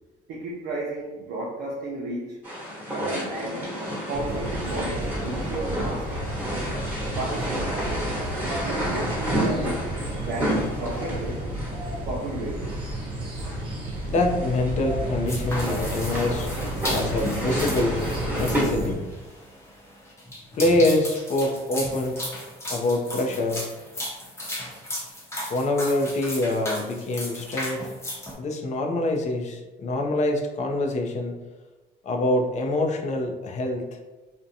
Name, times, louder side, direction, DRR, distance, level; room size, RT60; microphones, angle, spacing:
voice 1, 0.3-2.4 2.9-3.7 4.1-6.2 7.2-7.9 8.6-11.5 12.1-12.8, right 2 dB, 75° right, -4 dB, 0.5 m, -33 dB
sound 1, 2.4-18.6, equal, 15° right, 1.1 m, -31 dB
sound 2, 4.1-19.0, right 1 dB, 30° right, 0.6 m, -32 dB
voice 2, 14.1-16.5 16.9-19.0 20.5-22.2 22.7-23.6 25.5-27.9 28.4-31.4 32.0-34.0, left 2 dB, 45° left, 3 dB, 0.5 m, -25 dB
sound 3, 15.3-28.3, left 1 dB, 15° left, 0.8 m, -35 dB
2.6 x 2.1 x 2.6 m, 1.1 s
cardioid pair, 110°, 17 cm